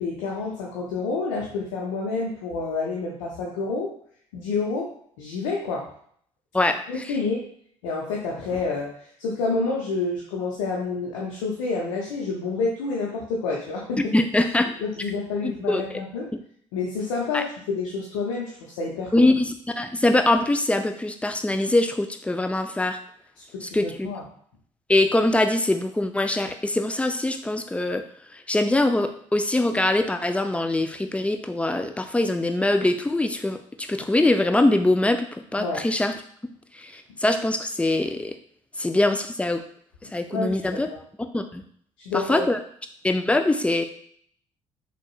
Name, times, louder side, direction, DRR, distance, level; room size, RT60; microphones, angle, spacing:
voice 1, 0.0-3.9 4.3-4.9 5.2-5.9 6.9-7.4 7.8-8.9 9.2-14.1 14.8-16.3 16.7-19.3 23.5-24.2 35.6-35.8 40.0-41.0 42.0-42.5, left 4 dB, 65° left, -2 dB, 0.6 m, -28 dB
voice 2, 6.5-7.1 14.1-14.7 15.4-16.0 17.3-17.4 19.1-23.0 23.6-24.1 24.9-28.0 28.3-36.2 36.7-38.4 38.8-39.6 40.1-40.9 41.3-41.6 42.1-42.6 43.0-43.8, left 2 dB, 10° left, 7 dB, 0.4 m, -23 dB
6.2 x 2.2 x 2.3 m, 0.62 s
figure-of-eight pair, 50°, 16 cm